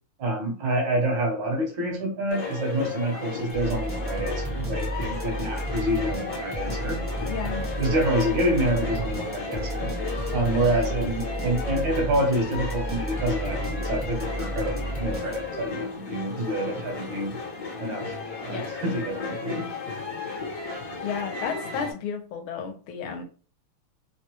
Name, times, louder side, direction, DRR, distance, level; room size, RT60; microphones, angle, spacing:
voice 1, 0.2-7.0 7.8-9.9 10.3-17.4 17.8-19.7, right 1 dB, 70° right, 1.3 m, -27 dB
sound 1, 2.3-21.9, left 4 dB, 60° left, 1.2 m, -34 dB
sound 2, 3.5-15.7, right 1 dB, 20° right, 0.3 m, -32 dB
voice 2, 7.3-7.7 18.5-18.7 20.3-20.4 21.0-23.2, left 7 dB, 75° left, 1.4 m, -32 dB
3.5 x 2.2 x 2.9 m
omnidirectional pair, 2.4 m